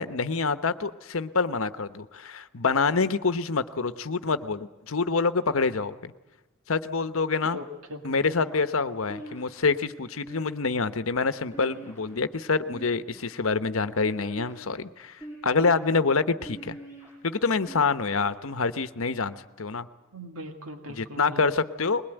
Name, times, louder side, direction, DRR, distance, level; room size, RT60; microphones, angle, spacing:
voice 1, 0.0-6.1 6.7-7.6 8.0-15.2 15.4-16.8 17.2-19.9 20.9-22.0, left 4 dB, 75° left, 11 dB, 1.0 m, -26 dB
voice 2, 7.4-8.6 20.1-21.5, left 1 dB, 85° right, 4 dB, 1.9 m, -40 dB
sound 1, 9.1-9.7 10.3-10.8 11.5-12.2 12.6-13.3 14.0-14.7 15.2-15.8 16.4-17.1 17.7-18.3, right 2 dB, 10° right, 7.8 m, -43 dB
21.0 x 21.0 x 9.1 m, 1.0 s
head